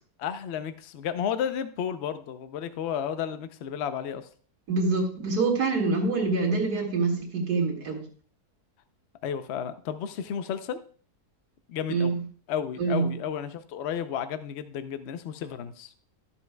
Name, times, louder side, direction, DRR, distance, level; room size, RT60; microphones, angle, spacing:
voice 1, 0.2-4.3 9.2-10.8 11.7-12.2 12.5-15.9, left 8 dB, 60° left, 11 dB, 0.7 m, -32 dB
voice 2, 4.7-8.1 11.9-12.2 12.8-13.1, right 3 dB, 75° right, -1 dB, 2.4 m, -25 dB
13.0 x 7.0 x 2.2 m, 0.43 s
omnidirectional pair, 1.7 m